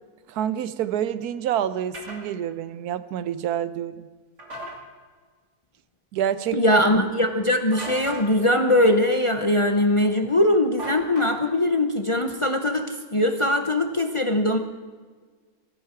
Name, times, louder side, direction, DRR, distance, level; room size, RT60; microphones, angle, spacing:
voice 1, 0.3-4.0 6.1-6.8, right 10 dB, 85° right, 14 dB, 1.2 m, -27 dB
sound 1, 1.9-2.2 4.4-4.8 7.7-8.3 10.8-11.6, right 2 dB, 50° right, 3.1 m, -36 dB
voice 2, 6.5-14.6, left 1 dB, 30° left, 6 dB, 0.7 m, -21 dB
18.5 x 14.0 x 4.5 m, 1.5 s
omnidirectional pair, 1.6 m